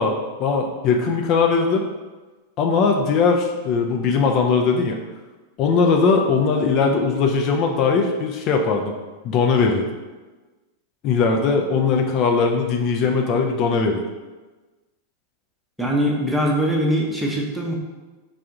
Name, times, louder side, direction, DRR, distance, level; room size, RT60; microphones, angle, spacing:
voice 1, 0.0-1.8 2.6-5.0 5.6-8.9 9.2-9.9 11.0-14.0, left 4 dB, 40° left, 2 dB, 0.4 m, -20 dB
voice 2, 15.8-17.8, equal, ahead, -2 dB, 0.7 m, -22 dB
3.6 x 2.5 x 3.5 m, 1.2 s
figure-of-eight pair, 90°, 0 cm